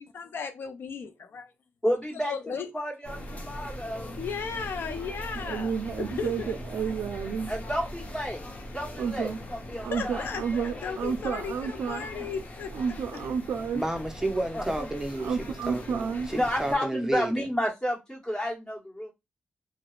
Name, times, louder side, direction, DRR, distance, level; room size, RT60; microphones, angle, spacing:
voice 1, 0.1-1.5 2.3-2.7 4.2-6.5 9.8-12.7, left 6 dB, 70° left, 0.4 m, -35 dB
voice 2, 1.8-2.3 2.7-4.2 7.5-8.4 8.7-10.3 10.8-10.9 12.1-12.2 14.5-14.9 16.3-19.1, equal, 20° left, 1.4 m, -31 dB
sound 1, 3.0-16.8, equal, 40° left, 0.7 m, -41 dB
voice 3, 5.4-7.5 9.0-9.4 9.8-12.1 12.7-13.8 15.2-16.3, right 6 dB, 80° right, 0.4 m, -31 dB
voice 4, 13.7-17.5, right 1 dB, 15° right, 0.6 m, -32 dB
2.8 x 2.0 x 2.3 m
cardioid pair, 75°, 4 cm